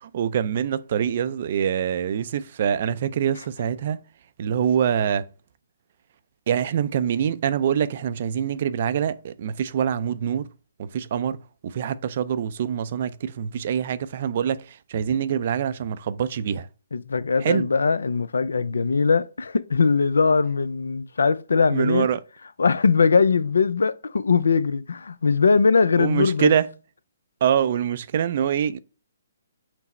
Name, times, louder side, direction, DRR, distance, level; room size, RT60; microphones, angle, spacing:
voice 1, 0.0-4.0 4.4-5.2 6.5-10.5 10.8-11.4 11.6-16.7 17.4-17.7 21.7-22.2 26.0-26.7 27.4-28.8, right 8 dB, 50° right, 0.4 m, -24 dB
voice 2, 16.9-22.1 22.6-26.5, left 5 dB, 85° left, 0.3 m, -21 dB
5.9 x 2.0 x 4.2 m
hypercardioid pair, 145°, 0 cm